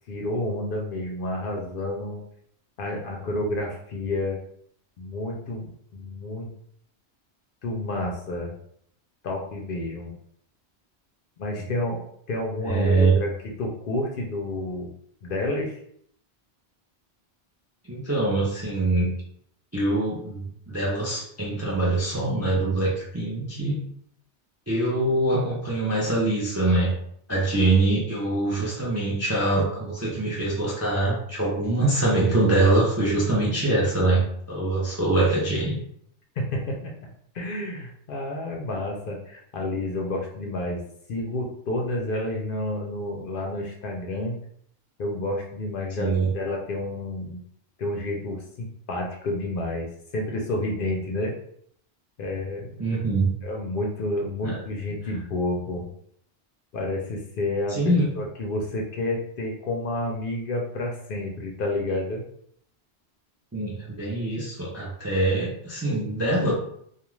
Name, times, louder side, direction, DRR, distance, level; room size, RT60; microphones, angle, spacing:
voice 1, 0.1-2.2 2.8-4.4 5.0-6.5 7.6-8.6 9.2-10.2 11.4-12.0 12.3-14.9 15.2-15.8 36.4-36.9 37.3-40.8 41.1-44.4 45.0-47.4 47.8-51.3 52.2-52.7 53.4-55.9 56.7-62.2, left 1 dB, 60° left, 0 dB, 0.6 m, -30 dB
voice 2, 12.6-13.2 17.9-19.1 19.7-23.8 24.7-26.9 27.3-35.8 46.0-46.3 52.8-53.3 54.4-54.6 57.7-58.1 63.5-66.5, right 2 dB, 25° right, -5 dB, 0.4 m, -24 dB
2.3 x 2.3 x 3.0 m, 0.67 s
omnidirectional pair, 1.1 m